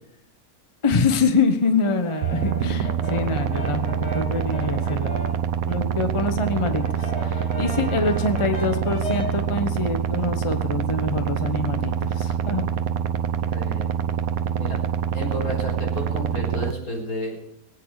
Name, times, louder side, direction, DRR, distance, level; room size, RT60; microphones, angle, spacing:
voice 1, 0.8-5.2 5.6-12.7, left 3 dB, 25° left, 8 dB, 1.0 m, -25 dB
Brass instrument, 1.8-5.5 5.9-9.5, left 1 dB, 45° left, 3.0 m, -35 dB
sound 1, 2.2-16.7, right 8 dB, 70° right, 1.1 m, -26 dB
voice 2, 13.4-13.9 14.5-14.8 15.1-17.4, equal, 70° left, -2 dB, 4.9 m, -31 dB
21.5 x 8.8 x 4.9 m, 0.74 s
omnidirectional pair, 1.6 m